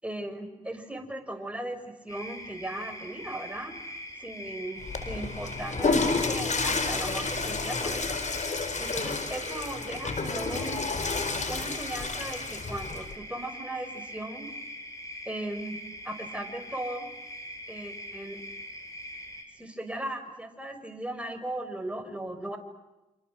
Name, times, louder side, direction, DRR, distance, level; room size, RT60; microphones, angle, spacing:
voice 1, 0.0-3.7 4.2-8.2 8.8-10.9 11.5-14.5 15.3-15.8 16.0-17.1 17.7-18.4 19.5-22.6, right 1 dB, 10° right, 5 dB, 5.8 m, -37 dB
sound 1, 2.1-19.4, equal, 20° left, 7.7 m, -42 dB
Water / Toilet flush, 4.8-13.1, left 3 dB, 55° left, 4.5 m, -30 dB
29.0 x 26.0 x 7.7 m, 1.0 s
supercardioid pair, 45°, 15 cm